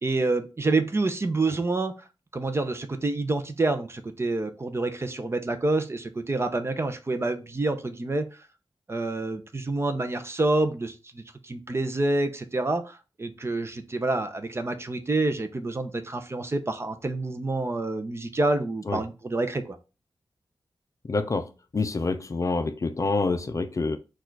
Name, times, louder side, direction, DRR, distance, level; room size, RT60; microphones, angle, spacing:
voice 1, 0.0-2.0 2.3-8.3 8.9-19.8, right 2 dB, 30° right, 0.6 m, -27 dB
voice 2, 21.0-24.0, left 3 dB, 35° left, 0.5 m, -27 dB
4.4 x 2.4 x 4.5 m
wide cardioid pair, 120°, 9 cm